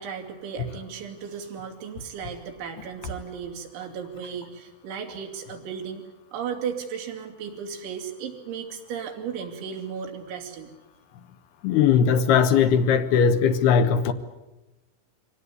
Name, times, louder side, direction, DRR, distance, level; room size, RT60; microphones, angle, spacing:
voice 1, 0.0-10.7, right 7 dB, 75° right, 2 dB, 5.2 m, -35 dB
voice 2, 11.6-14.1, left 7 dB, 70° left, 8 dB, 2.7 m, -19 dB
24.0 x 18.0 x 9.7 m, 1.1 s
omnidirectional pair, 5.5 m